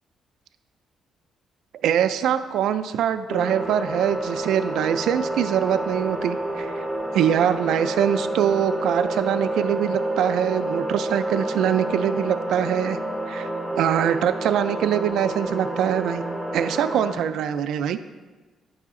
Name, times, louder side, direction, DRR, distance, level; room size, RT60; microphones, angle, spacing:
voice 1, 1.8-6.8 7.1-13.0 13.3-13.5 13.8-16.2 16.5-18.0, right 9 dB, 80° right, 9 dB, 0.3 m, -23 dB
sound 1, 3.3-17.1, right 1 dB, 15° left, 1.1 m, -29 dB
10.0 x 4.8 x 3.6 m, 1.3 s
cardioid pair, 90°, 0 cm